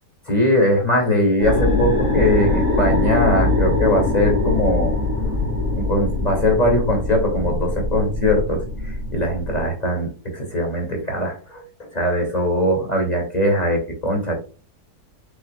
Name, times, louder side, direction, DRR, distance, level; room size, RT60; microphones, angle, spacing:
voice 1, 0.3-5.0 5.8-11.6 11.9-14.3, left 1 dB, 25° left, 1 dB, 2.2 m, -21 dB
sound 1, 1.4-9.7, left 2 dB, 50° right, 2.7 m, -22 dB
7.6 x 6.0 x 2.2 m, 0.35 s
omnidirectional pair, 1.8 m